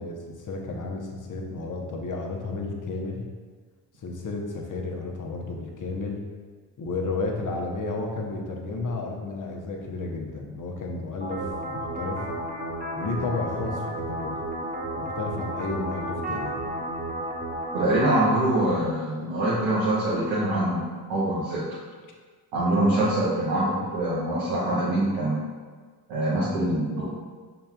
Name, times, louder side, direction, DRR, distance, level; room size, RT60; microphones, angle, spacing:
voice 1, 0.0-3.2 4.0-6.2 6.8-12.3 12.9-14.3 15.0-16.5, left 3 dB, 45° left, 1 dB, 0.9 m, -32 dB
sound 1, 11.2-18.1, right 1 dB, 20° right, 1.4 m, -32 dB
voice 2, 17.7-20.8 21.1-21.6 22.5-25.4 26.1-27.0, right 1 dB, 90° right, -8 dB, 1.0 m, -24 dB
5.4 x 3.9 x 2.3 m, 1.5 s
supercardioid pair, 50°, 43 cm